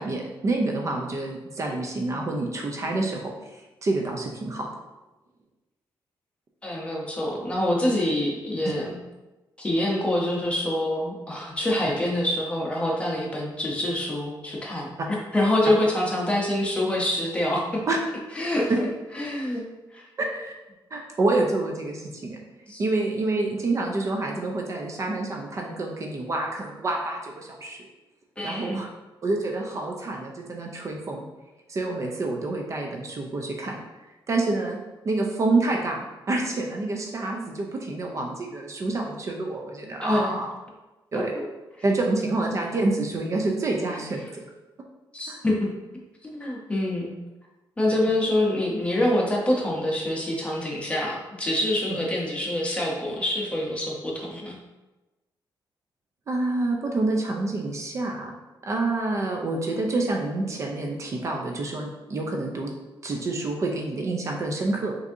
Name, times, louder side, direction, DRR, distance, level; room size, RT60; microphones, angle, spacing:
voice 1, 0.0-4.7 17.9-18.0 18.7-18.8 20.2-20.5 20.9-22.4 22.8-27.8 28.4-28.9 29.2-31.3 31.7-33.8 34.3-34.8 35.0-40.5 41.1-41.3 41.8-44.4 45.3-45.4 56.3-58.3 58.6-62.7 63.0-64.9, right 2 dB, 35° right, 1 dB, 0.5 m, -27 dB
voice 2, 6.6-9.0 9.6-17.8 18.3-18.7 19.1-19.6 19.9-20.0 22.7-22.8 28.4-28.8 40.0-40.3 41.1-41.2 45.1-45.7 46.2-47.1 47.8-54.6, left 1 dB, 15° left, -2 dB, 0.8 m, -26 dB
5.9 x 2.6 x 2.6 m, 1.1 s
wide cardioid pair, 150°, 9 cm